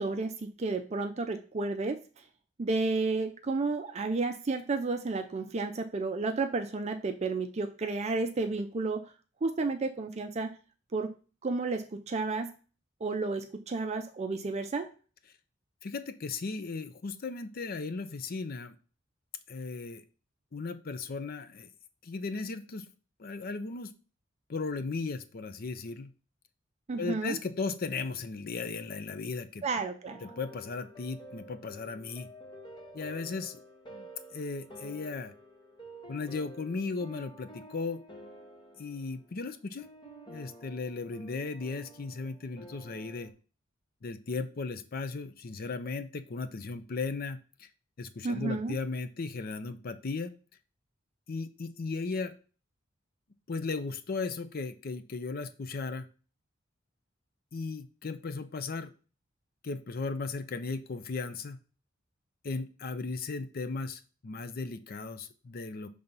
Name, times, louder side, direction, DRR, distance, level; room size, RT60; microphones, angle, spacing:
voice 1, 0.0-2.0 2.6-9.1 9.4-10.6 10.9-11.2 11.4-12.5 13.0-14.9 26.9-27.4 29.6-30.2 48.2-48.8, right 3 dB, 35° right, 6 dB, 0.4 m, -32 dB
voice 2, 15.8-18.8 19.5-20.0 20.5-21.7 22.0-22.8 23.2-23.9 24.5-26.1 27.0-29.6 30.2-32.3 32.9-33.6 33.9-34.1 34.3-35.3 36.1-38.0 38.8-39.8 40.3-43.3 44.0-47.7 48.0-50.3 51.3-52.3 53.5-56.1 57.5-58.9 59.6-61.6 62.4-65.9, left 4 dB, 50° left, 11 dB, 0.5 m, -36 dB
sound 1, 30.0-43.3, right 1 dB, 25° left, 1.0 m, -50 dB
5.6 x 3.4 x 5.2 m, 0.37 s
head